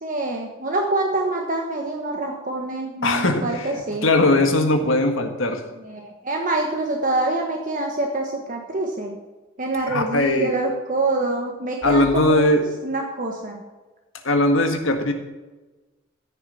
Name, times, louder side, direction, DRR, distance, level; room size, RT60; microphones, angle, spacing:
voice 1, 0.0-4.1 5.8-9.2 9.6-12.5 12.8-13.6, right 2 dB, 40° right, 1 dB, 1.3 m, -25 dB
voice 2, 3.0-5.6 9.9-10.6 11.8-12.6 14.2-15.1, left 2 dB, 75° left, 5 dB, 1.7 m, -20 dB
14.0 x 6.8 x 5.7 m, 1.2 s
head